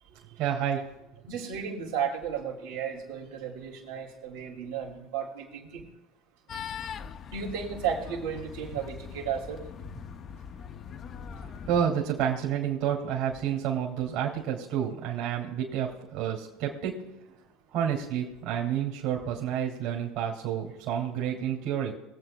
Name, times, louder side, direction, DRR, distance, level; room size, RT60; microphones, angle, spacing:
voice 1, 0.4-0.8 11.4-17.0 17.7-21.9, right 9 dB, 65° right, 0 dB, 2.5 m, -29 dB
voice 2, 1.3-5.8 7.3-9.6, right 7 dB, 85° right, -3 dB, 3.0 m, -34 dB
sound 1, 6.5-11.8, left 7 dB, 40° left, 0.6 m, -41 dB
23.0 x 8.0 x 2.2 m, 0.92 s
hypercardioid pair, 85°, 0 cm